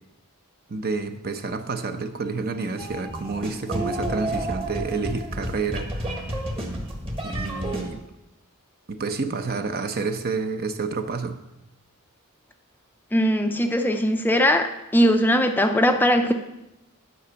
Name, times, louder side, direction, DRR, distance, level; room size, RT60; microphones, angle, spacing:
voice 1, 0.7-6.2 7.2-8.0 8.9-11.4, right 4 dB, 45° right, 8 dB, 0.7 m, -29 dB
sound 1, 2.8-7.8, right 1 dB, 25° right, 1.4 m, -30 dB
voice 2, 13.1-16.3, equal, 10° left, 6 dB, 0.4 m, -20 dB
9.6 x 5.2 x 6.9 m, 0.92 s
head